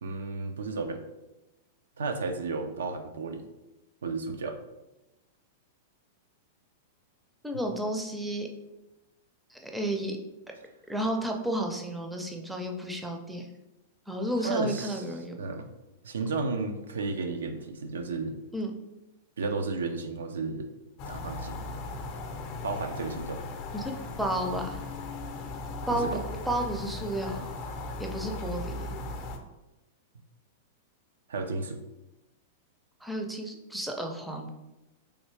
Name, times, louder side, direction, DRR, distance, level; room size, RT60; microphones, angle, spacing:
voice 1, 0.0-1.0 2.0-3.5 4.0-4.6 14.4-15.1 15.4-15.7 16.0-18.4 19.4-20.7 21.0-21.6 22.6-23.4 25.9-26.2 31.3-31.8, right 3 dB, 85° right, 6 dB, 0.4 m, -33 dB
voice 2, 7.4-8.5 9.5-10.2 10.9-13.5 14.1-15.3 18.5-18.7 23.7-24.8 25.9-26.2 26.5-27.5 28.0-28.7 33.0-34.5, right 1 dB, 5° right, 2 dB, 0.5 m, -32 dB
sound 1, 21.0-29.4, left 2 dB, 45° left, 0.5 m, -37 dB
3.2 x 2.6 x 3.2 m, 1.0 s
hypercardioid pair, 115°, 0 cm